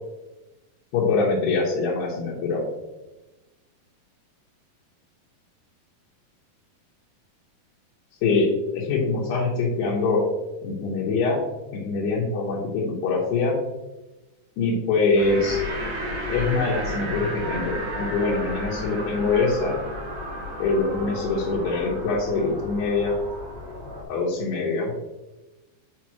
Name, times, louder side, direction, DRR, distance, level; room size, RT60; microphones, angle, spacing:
voice 1, 0.9-2.6 8.2-10.2 10.6-11.4 11.7-13.6 14.6-15.6 16.3-19.8 20.6-23.2 24.1-24.9, left 3 dB, 75° left, -5 dB, 2.7 m, -24 dB
sound 1, 15.2-24.0, equal, 55° right, 1.8 m, -33 dB
7.4 x 5.1 x 3.0 m, 1.1 s
omnidirectional pair, 4.3 m